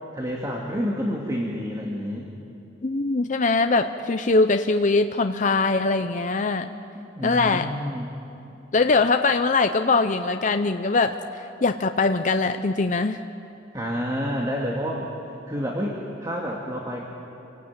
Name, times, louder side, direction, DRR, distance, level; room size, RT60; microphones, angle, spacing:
voice 1, 0.1-2.3 6.9-8.1 13.7-15.1 15.5-17.0, equal, 20° right, -2 dB, 2.1 m, -29 dB
voice 2, 2.8-6.7 7.2-7.7 8.7-11.2 11.6-13.2, left 3 dB, 40° left, 7 dB, 0.7 m, -22 dB
27.0 x 18.5 x 9.0 m, 2.9 s
head